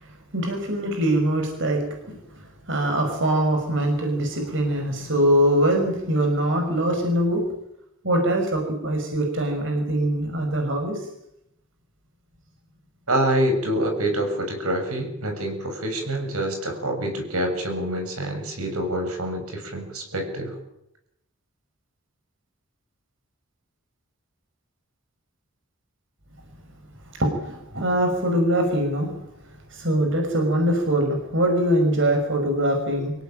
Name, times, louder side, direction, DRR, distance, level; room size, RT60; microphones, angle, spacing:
voice 1, 0.0-7.4 8.0-11.1 27.1-29.1 29.5-33.1, right 1 dB, 55° right, 3 dB, 5.8 m, -23 dB
voice 2, 13.1-20.6, right 1 dB, 80° right, 4 dB, 7.3 m, -26 dB
25.5 x 17.0 x 9.0 m, 0.81 s
head